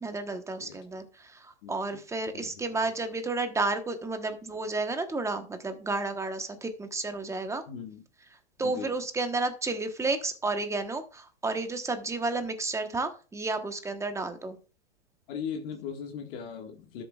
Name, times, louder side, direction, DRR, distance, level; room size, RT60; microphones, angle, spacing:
voice 1, 0.0-1.0 1.4-7.6 8.6-14.6, right 3 dB, 10° right, 8 dB, 1.1 m, -31 dB
voice 2, 1.6-2.0 2.3-2.9 7.7-8.0 8.6-9.0 15.3-17.0, left 7 dB, 50° left, 2 dB, 1.7 m, -39 dB
13.0 x 6.9 x 2.4 m, 0.36 s
hypercardioid pair, 120°, 35 cm